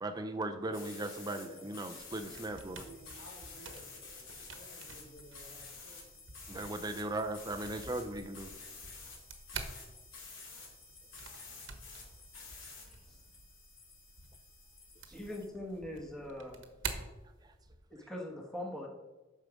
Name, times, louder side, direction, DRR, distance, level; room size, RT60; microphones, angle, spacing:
voice 1, 0.0-2.8 6.5-8.5 15.1-15.2 17.4-17.5 18.0-18.1, right 2 dB, 20° right, 7 dB, 0.5 m, -38 dB
sound 1, 0.7-15.5, left 4 dB, 80° left, 2.8 m, -51 dB
voice 2, 1.3-1.7 2.1-6.0, right 1 dB, 65° left, -2 dB, 3.6 m, -55 dB
sound 2, 2.0-17.9, right 5 dB, 75° right, 1.2 m, -49 dB
voice 3, 15.1-16.6 17.9-18.9, left 1 dB, 5° left, -1 dB, 1.4 m, -42 dB
9.3 x 6.5 x 5.1 m, 1.1 s
head